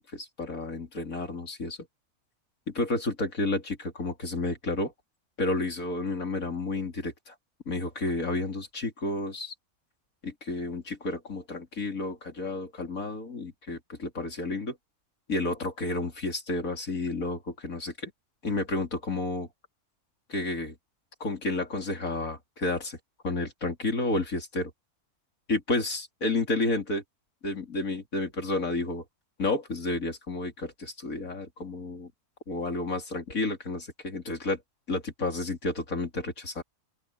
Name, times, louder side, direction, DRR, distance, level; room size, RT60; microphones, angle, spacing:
voice 1, 0.0-1.8 2.7-4.9 5.4-7.3 7.7-9.5 10.2-14.8 15.3-18.1 18.4-19.5 20.3-20.8 21.2-23.0 23.2-24.7 25.5-27.0 27.4-29.0 29.4-32.1 32.5-34.6 34.9-36.6, left 2 dB, 65° left, 3.9 m, -31 dB
open air
omnidirectional pair, 1.6 m